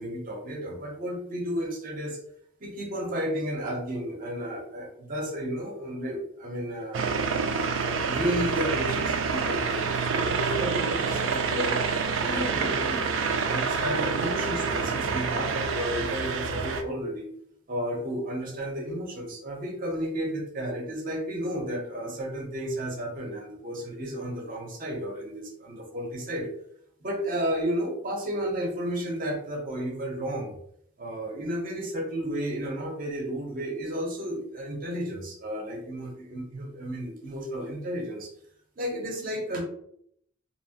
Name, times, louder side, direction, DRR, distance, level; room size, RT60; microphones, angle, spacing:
voice 1, 0.0-2.2 2.6-7.0 7.8-11.8 12.1-17.3 17.7-26.5 27.0-30.5 31.0-38.3 38.8-39.6, equal, 40° right, 0 dB, 0.7 m, -32 dB
sound 1, 6.9-16.8, right 5 dB, 65° right, 0.3 m, -27 dB
2.9 x 2.3 x 2.8 m, 0.70 s
head